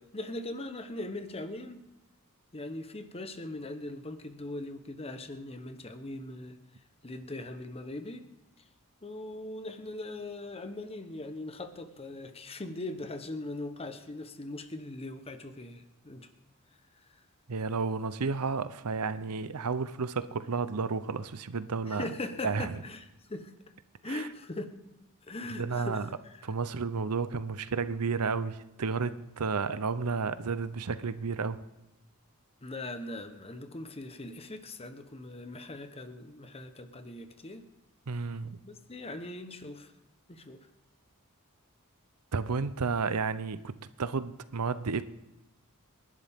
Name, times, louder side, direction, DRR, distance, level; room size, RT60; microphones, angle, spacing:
voice 1, 0.0-1.8 2.5-6.6 7.0-8.3 9.0-16.3 21.9-23.5 24.0-24.7 25.2-26.1 32.6-37.6 38.6-39.9 40.3-40.7, left 2 dB, 25° left, 9 dB, 1.0 m, -40 dB
voice 2, 17.5-22.1 22.4-22.7 24.0-24.3 25.6-26.1 26.4-31.6 38.1-38.6 42.3-45.0, right 4 dB, 90° right, 14 dB, 0.7 m, -32 dB
27.5 x 11.5 x 3.6 m, 0.94 s
head